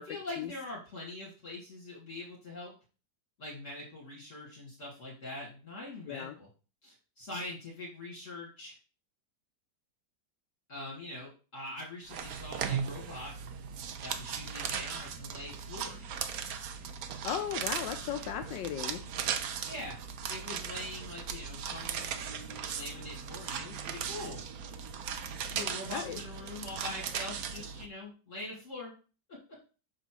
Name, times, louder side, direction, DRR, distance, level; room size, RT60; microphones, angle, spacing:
voice 1, 0.0-2.7 3.4-6.5 6.8-8.7 10.7-13.3 14.0-16.1 19.7-19.9 20.3-24.4 25.5-28.9, left 2 dB, 40° left, -5 dB, 2.6 m, -43 dB
sound 1, 12.1-27.9, right 7 dB, 60° right, 1.0 m, -38 dB
voice 2, 17.2-19.0 25.9-26.2, left 10 dB, 75° left, 7 dB, 1.2 m, -36 dB
6.4 x 4.0 x 6.0 m, 0.35 s
omnidirectional pair, 2.0 m